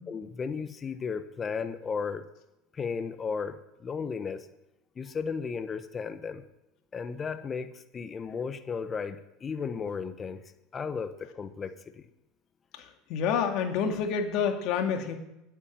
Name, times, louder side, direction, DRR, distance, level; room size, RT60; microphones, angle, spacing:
voice 1, 0.1-2.3 2.7-4.5 5.0-6.4 6.9-10.4 10.7-12.1, left 5 dB, 25° left, 10 dB, 0.9 m, -35 dB
voice 2, 12.8-15.1, left 7 dB, 60° left, 4 dB, 2.0 m, -28 dB
9.0 x 8.4 x 7.2 m, 0.92 s
supercardioid pair, 110°, 0 cm